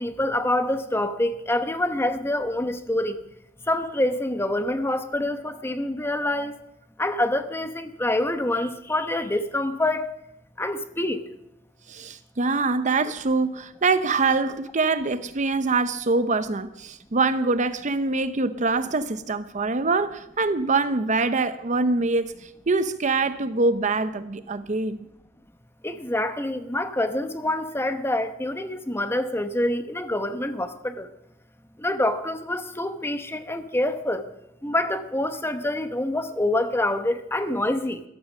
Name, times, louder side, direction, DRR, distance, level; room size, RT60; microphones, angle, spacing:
voice 1, 0.0-3.2 3.7-6.6 7.0-10.1 10.6-11.2 25.8-31.1 31.8-34.2 34.6-38.0, left 1 dB, 10° left, 1.0 m, -26 dB
voice 2, 11.9-25.1, right 3 dB, 40° right, 0.7 m, -24 dB
14.0 x 12.5 x 6.2 m
head